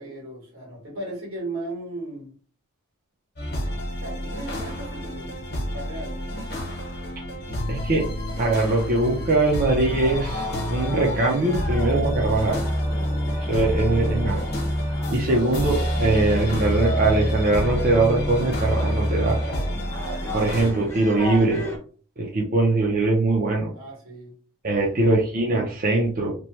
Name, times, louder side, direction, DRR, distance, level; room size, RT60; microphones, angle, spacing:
voice 1, 0.0-2.3 4.0-5.4 5.7-6.2 13.8-14.1 23.7-24.3 24.9-25.0 25.3-25.4, right 1 dB, 75° right, -1 dB, 1.5 m, -36 dB
sound 1, 3.4-20.7, equal, 50° left, 1.1 m, -27 dB
voice 2, 7.7-8.1 8.4-12.6 13.3-14.4 15.1-19.4 20.3-21.6 22.2-23.7 24.6-26.3, right 2 dB, 40° right, -2 dB, 0.5 m, -22 dB
sound 2, 9.8-21.8, right 1 dB, 10° left, 0.7 m, -34 dB
2.9 x 2.2 x 3.0 m, 0.41 s
head